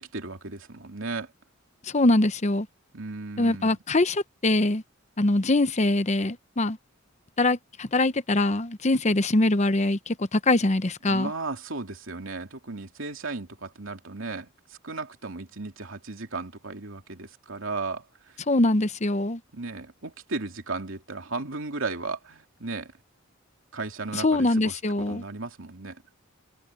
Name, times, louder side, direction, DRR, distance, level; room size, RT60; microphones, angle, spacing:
voice 1, 0.0-1.3 2.9-3.7 11.1-18.4 19.5-22.9 23.7-24.8 25.1-26.0, right 3 dB, 70° right, 2.9 m, -35 dB
voice 2, 1.8-2.7 3.4-4.8 5.2-6.8 7.4-11.3 18.5-19.4 24.1-25.2, left 2 dB, 35° left, 0.8 m, -23 dB
head